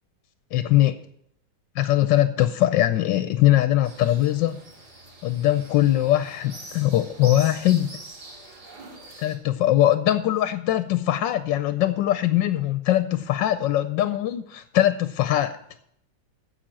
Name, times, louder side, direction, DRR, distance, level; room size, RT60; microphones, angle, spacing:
voice 1, 0.5-1.0 1.7-4.6 5.2-8.0 9.2-15.6, left 13 dB, 85° left, 1.3 m, -21 dB
sound 1, 3.8-9.4, right 2 dB, 60° right, 2.7 m, -43 dB
10.0 x 7.3 x 7.5 m
omnidirectional pair, 1.9 m